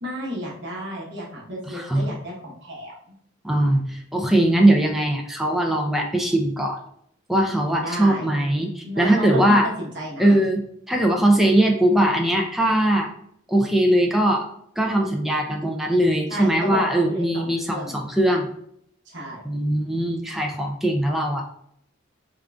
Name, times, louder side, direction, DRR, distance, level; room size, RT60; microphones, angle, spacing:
voice 1, 0.0-2.9 7.8-8.3 8.8-10.4 16.3-18.0 19.0-19.4, equal, 55° right, -4 dB, 1.1 m, -32 dB
voice 2, 1.7-2.1 3.4-6.8 7.3-9.7 10.2-13.1 13.5-14.4 14.8-18.5 19.4-21.4, right 1 dB, ahead, 1 dB, 0.4 m, -20 dB
3.7 x 3.6 x 2.3 m, 0.70 s
head